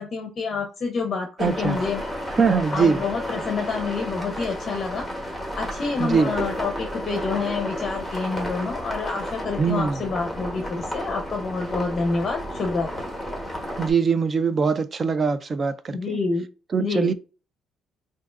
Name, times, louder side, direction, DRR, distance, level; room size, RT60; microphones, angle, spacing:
voice 1, 0.0-2.0 2.7-5.1 5.5-13.1 15.9-16.5 16.8-17.1, left 4 dB, 35° left, 0.6 m, -28 dB
sound 1, 1.4-13.9, equal, ahead, 1.1 m, -32 dB
voice 2, 1.4-1.8 2.3-3.0 6.0-6.3 9.6-10.0 13.8-16.2 16.7-17.1, right 5 dB, 30° right, 0.3 m, -22 dB
6.1 x 2.6 x 2.5 m
cardioid pair, 150°, 0 cm